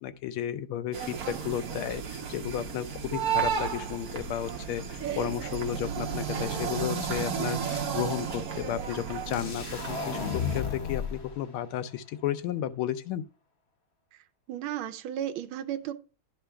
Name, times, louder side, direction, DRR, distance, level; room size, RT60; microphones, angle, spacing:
voice 1, 0.0-13.2, left 10 dB, 90° left, 1.5 m, -33 dB
sound 1, 0.9-10.6, right 7 dB, 55° right, 1.2 m, -33 dB
sound 2, 7.6-8.2 8.5-8.6, equal, 20° right, 4.2 m, -48 dB
sound 3, 9.3-11.3, left 7 dB, 60° left, 0.6 m, -33 dB
voice 2, 14.5-15.9, right 11 dB, 80° right, 1.4 m, -34 dB
11.0 x 3.7 x 3.4 m
omnidirectional pair, 2.3 m